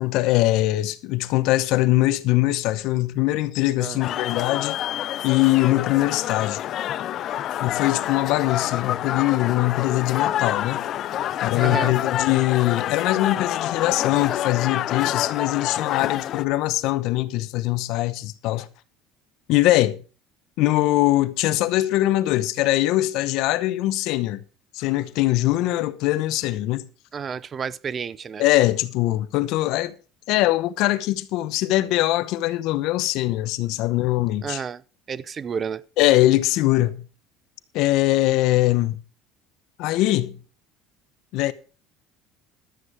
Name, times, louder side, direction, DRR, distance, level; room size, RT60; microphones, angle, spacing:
voice 1, 0.0-4.8 5.2-6.6 7.6-10.8 11.4-18.7 19.5-20.0 20.6-24.4 24.7-26.9 28.4-29.9 30.3-34.6 36.0-37.0 37.7-39.0 39.8-40.4 41.3-41.5, left 16 dB, 70° left, 0.9 m, -22 dB
sound 1, 4.0-16.4, left 12 dB, 50° left, 0.4 m, -27 dB
voice 2, 11.6-12.0 27.1-28.4 34.4-34.8 35.1-35.9, right 6 dB, 35° right, 0.5 m, -30 dB
12.5 x 8.0 x 4.8 m
supercardioid pair, 110°, 0 cm